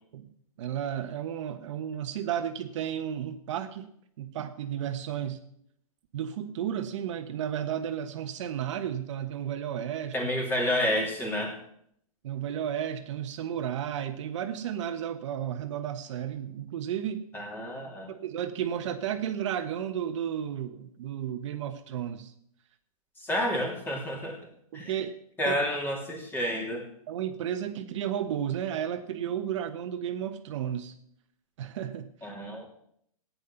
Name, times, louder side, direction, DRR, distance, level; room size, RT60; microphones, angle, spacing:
voice 1, 0.6-3.9 4.2-5.4 6.1-10.3 12.2-17.3 18.1-22.3 24.7-25.2 25.5-25.6 27.1-30.9 31.6-32.3, right 9 dB, 55° right, 7 dB, 1.2 m, -33 dB
voice 2, 10.1-11.6 17.3-18.1 23.2-24.4 24.7-24.9 25.4-26.8 32.2-32.7, left 1 dB, 10° left, 1 dB, 3.1 m, -30 dB
14.5 x 9.6 x 5.8 m, 0.70 s
hypercardioid pair, 135°, 19 cm